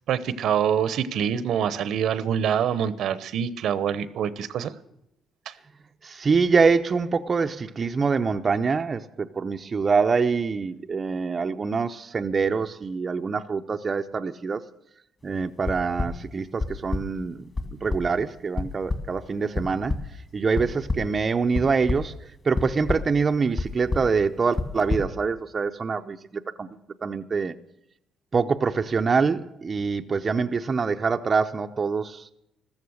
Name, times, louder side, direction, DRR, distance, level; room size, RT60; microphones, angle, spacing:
voice 1, 0.1-4.7 5.5-5.6, right 8 dB, 70° right, 0.9 m, -25 dB
voice 2, 6.0-14.7 15.2-17.5 17.8-26.7 27.0-27.5 28.3-32.3, right 5 dB, 30° right, 0.7 m, -25 dB
sound 1, 15.6-16.1 16.6-17.0 17.6-17.7 17.9-18.0 18.6-18.7 18.9-19.0 19.6-20.0 20.6-21.0 21.6-22.1 22.6-23.0 23.6-23.7 23.9-24.1 24.6-25.0, left 3 dB, 30° left, 2.2 m, -25 dB
14.5 x 13.5 x 6.5 m
cardioid pair, 115°, 0 cm